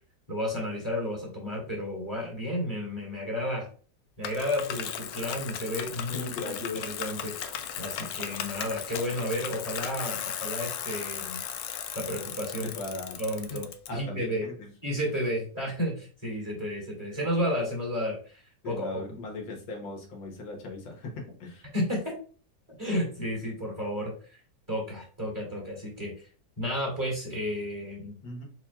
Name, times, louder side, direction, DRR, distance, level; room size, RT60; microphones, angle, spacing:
voice 1, 0.3-3.7 4.2-6.5 6.8-11.4 11.9-12.7 13.2-14.5 14.8-19.0 21.7-22.2 22.8-24.4 24.7-26.3 26.6-28.1, equal, 10° right, -2 dB, 2.1 m, -32 dB
Bicycle, 4.2-13.9, left 9 dB, 75° left, 0.8 m, -36 dB
voice 2, 6.1-6.8 12.6-13.2 13.5-13.6 13.9-14.7 18.6-21.7 28.2-28.4, left 2 dB, 90° left, 1 dB, 1.9 m, -38 dB
4.5 x 4.3 x 2.4 m, 0.39 s
omnidirectional pair, 2.0 m